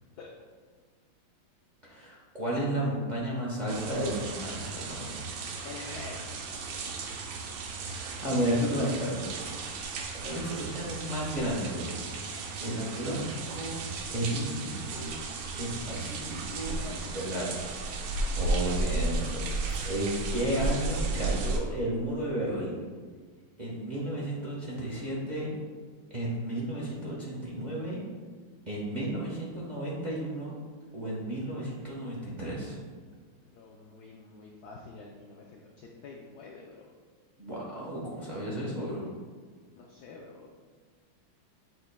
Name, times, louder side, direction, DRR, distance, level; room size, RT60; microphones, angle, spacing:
voice 1, 1.8-5.2 5.6-5.7 7.9-9.8 10.2-11.9 12.6-13.8 14.1-15.2 15.6-16.8 17.1-17.5 18.1-22.8 23.6-25.5 26.1-28.0 28.7-30.5 30.9-32.8 37.4-39.1, right 1 dB, 25° right, -6 dB, 1.0 m, -33 dB
sound 1, 3.7-21.6, right 3 dB, 75° right, 1.4 m, -34 dB
voice 2, 5.6-6.2 16.7-17.4 21.0-21.1 33.5-36.9 39.8-40.5, left 4 dB, 80° left, 0 dB, 0.8 m, -47 dB
sound 2, 19.6-22.7, right 1 dB, 55° right, 0.5 m, -54 dB
7.9 x 5.3 x 2.2 m, 1.5 s
omnidirectional pair, 2.4 m